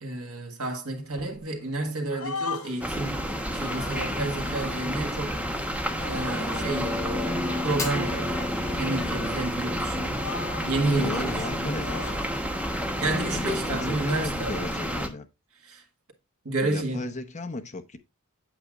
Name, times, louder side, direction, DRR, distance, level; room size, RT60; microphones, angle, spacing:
voice 1, 0.0-3.3 3.5-5.4 6.1-7.1 7.6-8.4 8.8-10.3 10.6-11.8 13.0-14.7 15.6-15.8 16.5-17.1, right 2 dB, 80° right, 1.7 m, -30 dB
sound 1, 1.1-1.8 2.1-3.0 3.6-5.0 5.9-9.4 9.7-9.8 10.1-10.8 11.7-12.3 12.8-14.3, left 5 dB, 80° left, 1.6 m, -40 dB
sound 2, 2.8-15.1, equal, 5° right, 0.9 m, -30 dB
Fire, 7.6-14.6, left 3 dB, 15° left, 1.5 m, -43 dB
voice 2, 11.0-12.0 13.3-15.3 16.6-18.0, left 2 dB, 35° left, 0.9 m, -35 dB
8.3 x 7.8 x 2.4 m
head